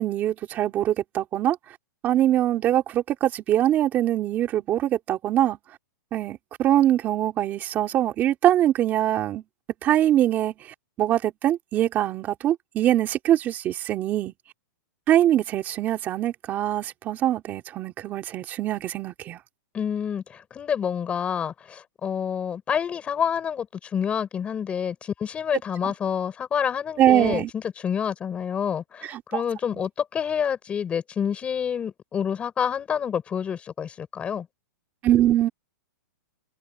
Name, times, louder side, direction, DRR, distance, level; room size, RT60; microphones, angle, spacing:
voice 1, 0.0-1.6 2.0-5.6 6.1-9.4 9.8-10.5 11.0-14.3 15.1-19.4 27.0-27.5 29.0-29.4 29.7-29.8 35.0-35.5, right 12 dB, 15° right, 3.5 m, -23 dB
voice 2, 19.7-23.7 23.9-34.5, left 8 dB, 10° left, 5.8 m, -28 dB
hypercardioid pair, 175°, 11 cm